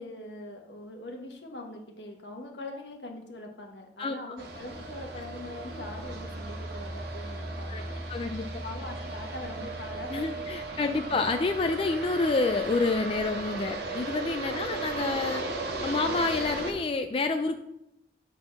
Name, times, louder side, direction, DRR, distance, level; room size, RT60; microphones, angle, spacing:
voice 1, 0.0-8.1 8.6-11.2 14.4-14.7, left 2 dB, 80° left, 2 dB, 1.4 m, -42 dB
sound 1, 4.4-16.7, right 3 dB, 60° right, 1.4 m, -36 dB
voice 2, 8.1-8.6 10.1-15.4 15.8-17.6, left 3 dB, 30° left, 7 dB, 0.4 m, -28 dB
8.5 x 4.1 x 5.9 m, 0.84 s
head